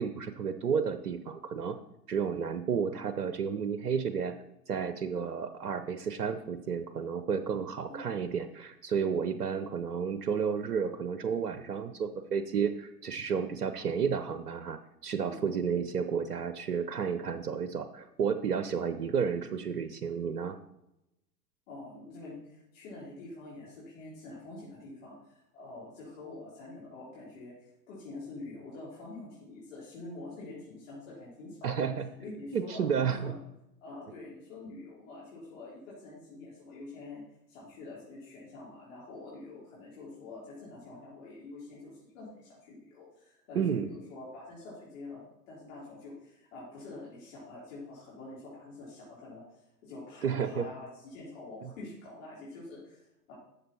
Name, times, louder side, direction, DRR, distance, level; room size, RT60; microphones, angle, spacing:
voice 1, 0.0-1.8 2.1-4.3 4.7-20.6 31.6-32.1 32.5-33.3 43.5-43.9 50.2-50.7, right 6 dB, 70° right, 11 dB, 0.8 m, -31 dB
voice 2, 15.2-15.6 21.7-31.9 32.2-33.4 33.8-37.2 37.5-53.3, left 2 dB, 55° left, -7 dB, 3.7 m, -46 dB
12.0 x 7.0 x 4.2 m, 0.88 s
figure-of-eight pair, 100°, 47 cm